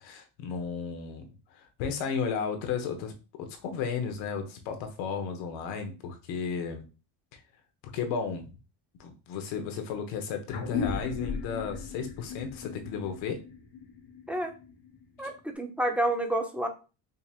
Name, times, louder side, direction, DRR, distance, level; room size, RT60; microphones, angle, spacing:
voice 1, 0.0-6.8 7.3-7.4 7.9-8.5 9.0-13.4 15.2-15.3, left 6 dB, 90° left, 6 dB, 1.1 m, -34 dB
sound 1, 10.5-15.4, left 5 dB, 50° left, 1.1 m, -36 dB
voice 2, 15.2-16.7, right 1 dB, 5° right, 2 dB, 0.7 m, -29 dB
5.1 x 2.9 x 2.4 m, 0.32 s
cardioid pair, 110°, 44 cm